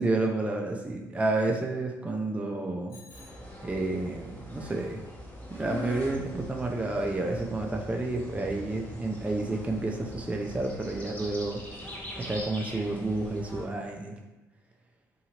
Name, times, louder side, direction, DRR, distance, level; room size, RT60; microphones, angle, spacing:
voice 1, 0.0-3.0 3.6-5.0 5.5-11.6 12.2-14.2, right 2 dB, 15° right, 1 dB, 0.4 m, -30 dB
Bicycle bell, 2.9-4.2, left 3 dB, 80° left, 1.4 m, -55 dB
sound 1, 3.1-13.6, equal, 15° left, 0.9 m, -42 dB
2.7 x 2.7 x 2.8 m, 1.1 s
hypercardioid pair, 55°, 9 cm